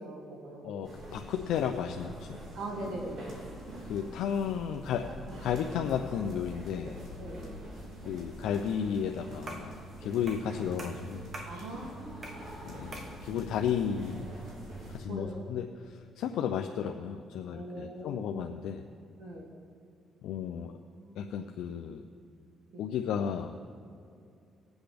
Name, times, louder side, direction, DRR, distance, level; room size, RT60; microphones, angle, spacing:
voice 1, 0.0-1.1 2.5-3.3 5.0-5.9 6.7-6.9 7.2-7.6 10.2-10.3 11.4-12.3 15.1-15.4 17.5-18.6 19.2-19.5 20.5-20.7 21.0-21.3 22.7-22.8, right 1 dB, 85° right, -3 dB, 2.3 m, -42 dB
voice 2, 0.6-2.4 3.9-5.1 5.4-7.0 8.0-9.7 10.0-11.2 12.6-14.3 14.9-18.8 20.2-20.7 21.2-22.0 22.8-23.7, left 8 dB, 85° left, 4 dB, 0.4 m, -33 dB
sound 1, 0.8-15.0, right 1 dB, 70° right, 3.1 m, -45 dB
sound 2, 9.5-9.8 10.3-10.5 10.8-11.6 12.2-12.5 12.9-13.2, right 2 dB, 45° right, 1.7 m, -44 dB
19.5 x 8.0 x 3.4 m, 2.5 s
cardioid pair, 90°, 0 cm